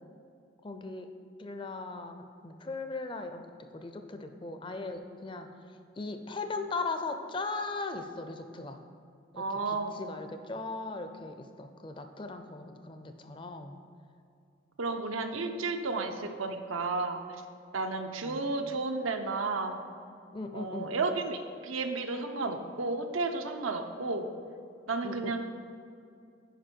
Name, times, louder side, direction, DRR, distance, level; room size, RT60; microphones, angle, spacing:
voice 1, 0.6-1.1 1.4-3.5 3.7-5.5 6.0-8.8 9.3-13.8 18.2-18.4 20.3-21.0 25.0-25.4, left 3 dB, 25° left, 7 dB, 0.5 m, -38 dB
voice 2, 9.4-10.0 14.8-17.2 17.7-19.8 20.5-24.3 24.9-25.4, right 3 dB, 90° right, 5 dB, 0.7 m, -32 dB
10.0 x 5.1 x 4.5 m, 2.4 s
head